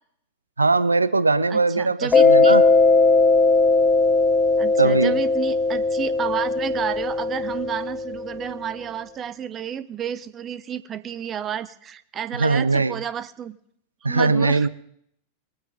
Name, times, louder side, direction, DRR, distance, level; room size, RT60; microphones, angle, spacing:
voice 1, 0.6-2.6 4.8-5.2 12.4-13.0 14.0-14.7, right 3 dB, 80° right, 16 dB, 0.5 m, -20 dB
voice 2, 1.5-2.6 4.6-13.6 14.1-14.7, right 9 dB, 25° right, 15 dB, 0.8 m, -31 dB
Mallet percussion, 2.1-8.5, left 3 dB, 20° left, 1.0 m, -19 dB
21.0 x 9.2 x 5.2 m, 0.66 s
figure-of-eight pair, 90°, 0 cm